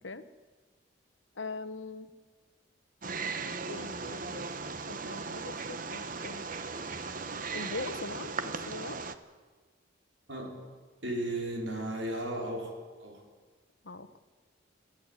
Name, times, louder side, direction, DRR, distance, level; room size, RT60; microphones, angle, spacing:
voice 1, 1.4-2.1 3.7-4.5 4.9-6.5 7.5-9.0 13.8-14.1, left 3 dB, 75° left, 11 dB, 1.1 m, -41 dB
Wild animals, 3.0-9.2, right 4 dB, 45° right, 1.0 m, -37 dB
voice 2, 10.3-10.6 11.0-13.2, right 1 dB, 70° right, 1 dB, 4.8 m, -35 dB
23.0 x 15.0 x 8.2 m, 1.4 s
head